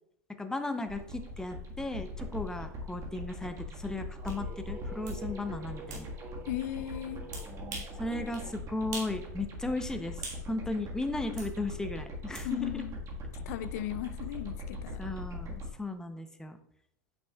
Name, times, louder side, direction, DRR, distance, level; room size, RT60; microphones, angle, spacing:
voice 1, 0.4-6.1 8.0-10.2 10.5-12.8 15.0-16.6, left 2 dB, 5° left, 8 dB, 0.7 m, -36 dB
sound 1, 0.9-15.7, left 1 dB, 40° right, 1.6 m, -41 dB
sound 2, 3.7-8.6, right 3 dB, 20° right, 1.1 m, -48 dB
sound 3, 4.3-4.4 5.1-5.2 5.9-6.1 7.3-8.0 8.3-8.5 8.9-9.2 9.5-10.5 11.4-11.5 12.3-12.5, right 4 dB, 85° right, 2.5 m, -42 dB
voice 2, 6.4-7.2 12.4-13.0 13.5-15.0, left 14 dB, 70° left, 14 dB, 0.4 m, -36 dB
8.7 x 6.1 x 2.3 m, 0.73 s
hypercardioid pair, 110°, 9 cm